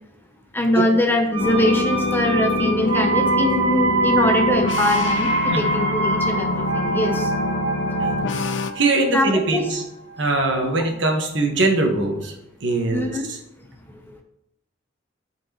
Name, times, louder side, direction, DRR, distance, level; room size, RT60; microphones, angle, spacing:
voice 1, 0.5-7.3 9.1-9.7 10.6-10.7 12.9-13.3, left 1 dB, 10° left, 4 dB, 0.6 m, -22 dB
sound 1, 1.3-11.0 11.3-11.4, right 3 dB, 90° right, 2.2 m, -25 dB
sound 2, 1.4-8.7, left 2 dB, 65° left, 0.5 m, -25 dB
voice 2, 8.7-9.8 10.2-12.3 12.6-13.4, right 2 dB, 70° right, 2 dB, 1.3 m, -21 dB
11.0 x 4.5 x 2.9 m, 0.87 s
head